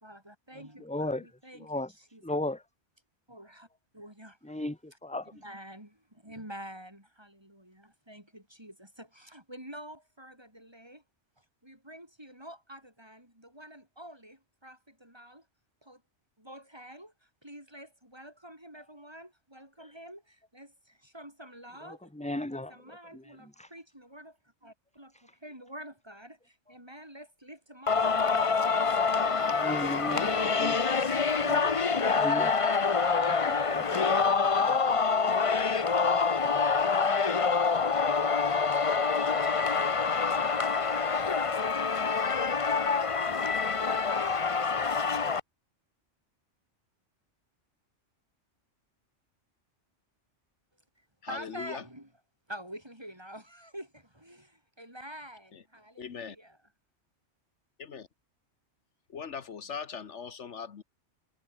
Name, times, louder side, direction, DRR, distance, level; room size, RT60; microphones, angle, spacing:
voice 1, 0.0-1.8 2.1-2.2 3.3-3.7 3.9-4.4 5.4-11.0 11.4-15.5 15.8-16.0 16.4-22.1 22.7-28.9 29.2-33.8 34.3-34.9 39.0-41.7 51.0-52.1 52.5-56.6, right 1 dB, 20° right, 6.6 m, -48 dB
voice 2, 0.5-1.9 2.2-2.7 4.4-4.8 5.0-5.3 18.8-18.9 19.8-19.9 21.8-23.7 25.1-25.3 29.6-30.8 31.4-32.5 33.1-34.3 34.6-34.9, left 1 dB, 5° left, 1.3 m, -37 dB
Singing, 27.9-45.4, left 5 dB, 30° left, 0.8 m, -26 dB
voice 3, 51.3-51.8 55.5-55.6 56.0-56.4 57.8-58.1 59.1-60.8, left 6 dB, 70° left, 1.5 m, -40 dB
omnidirectional pair, 1.2 m